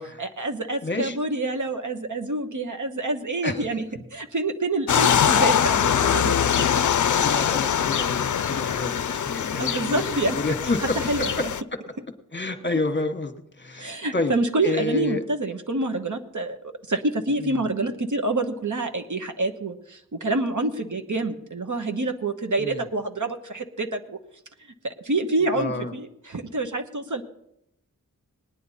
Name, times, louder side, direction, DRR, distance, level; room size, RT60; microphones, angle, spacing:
voice 1, 0.2-3.9 4.1-6.6 9.6-10.5 11.1-11.3 13.8-16.6 16.9-24.2 24.8-27.2, right 2 dB, 65° right, 6 dB, 1.1 m, -27 dB
voice 2, 0.8-1.2 3.4-3.7 6.2-6.7 7.1-10.0 10.3-11.0 12.3-14.3 14.6-15.2 17.4-17.7 22.6-22.9 25.5-25.9, left 2 dB, 35° left, 7 dB, 1.3 m, -29 dB
sound 1, 4.9-11.6, left 8 dB, 60° left, 0.4 m, -23 dB
19.5 x 9.7 x 4.2 m, 0.81 s
wide cardioid pair, 60°, 33 cm